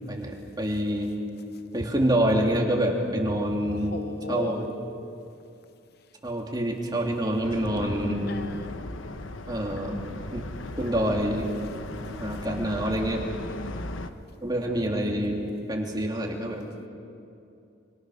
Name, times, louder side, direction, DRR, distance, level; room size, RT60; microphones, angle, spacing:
voice 1, 0.1-1.1 1.7-3.9 4.3-4.7 6.2-8.3 9.5-10.0 10.3-10.4 10.8-11.5 12.2-13.2 14.4-15.4 15.7-16.7, right 1 dB, 20° right, 0 dB, 2.8 m, -26 dB
voice 2, 3.8-4.5 8.3-8.7 13.5-13.9 16.8-16.9, left 2 dB, 55° left, 11 dB, 0.8 m, -37 dB
sound 1, 7.4-14.1, left 2 dB, 90° left, 1.2 m, -37 dB
26.0 x 25.0 x 6.5 m, 2.6 s
head